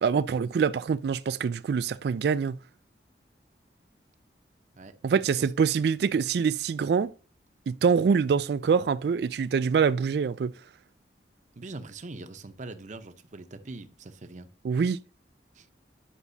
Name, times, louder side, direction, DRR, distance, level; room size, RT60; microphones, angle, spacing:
voice 1, 0.0-2.6 5.0-7.1 7.7-10.6 14.6-15.0, right 6 dB, 60° right, 0.3 m, -25 dB
voice 2, 11.6-14.5 15.5-15.7, right 2 dB, 45° right, 0.7 m, -42 dB
9.8 x 6.0 x 2.7 m
head